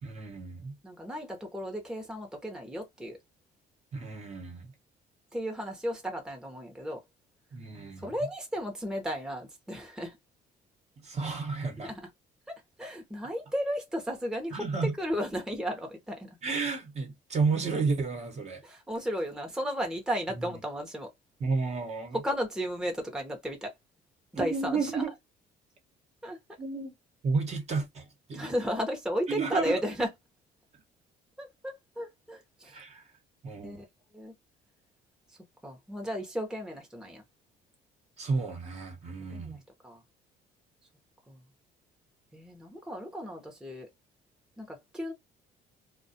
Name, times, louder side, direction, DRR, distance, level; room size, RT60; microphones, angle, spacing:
voice 1, 0.0-0.8 3.9-4.7 7.5-8.1 11.0-11.9 14.5-14.9 16.4-18.6 20.3-20.6 21.4-22.2 24.3-25.1 26.6-26.9 27.2-28.5 29.3-29.8 32.7-33.0 33.4-33.8 38.2-39.6, right 4 dB, 40° right, 1.0 m, -32 dB
voice 2, 0.8-3.2 5.3-7.0 8.0-10.2 11.8-12.0 12.5-14.6 15.0-16.4 18.6-21.1 22.1-23.7 24.4-25.0 26.2-26.4 28.3-30.1 31.4-32.8 33.6-33.8 34.1-34.3 35.6-37.2 39.3-39.6 39.8-40.0 41.3-41.4 42.3-43.9 44.6-45.1, equal, 5° right, 0.8 m, -34 dB
2.3 x 2.3 x 2.7 m
cardioid pair, 110°, 17 cm